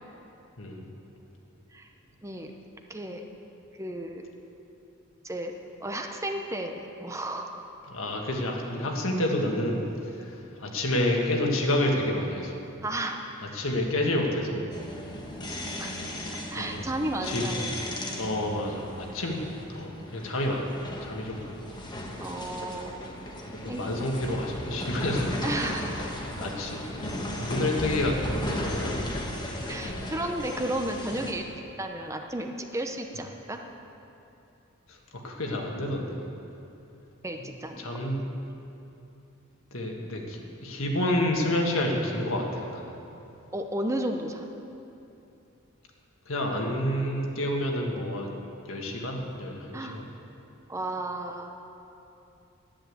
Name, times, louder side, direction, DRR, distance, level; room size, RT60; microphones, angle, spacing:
voice 1, 0.6-0.9 7.9-12.6 13.4-14.7 16.6-16.8 17.2-17.8 18.1-21.6 23.6-25.4 26.4-29.1 34.9-36.2 37.4-37.5 37.8-38.2 39.7-43.0 46.2-48.4 48.7-50.1, left 1 dB, 70° left, 1 dB, 1.7 m, -29 dB
voice 2, 2.2-2.5 2.9-3.2 3.8-4.2 5.2-5.5 5.8-7.6 12.8-13.2 15.8-15.9 16.5-17.7 22.2-22.9 23.7-23.9 25.4-26.2 29.7-31.4 31.8-33.6 37.2-38.0 43.5-44.5 49.7-50.0 50.7-51.5, right 1 dB, 15° right, 4 dB, 0.7 m, -33 dB
sound 1, 14.7-31.3, left 1 dB, 20° left, 1.3 m, -36 dB
10.5 x 10.0 x 7.9 m, 2.8 s
head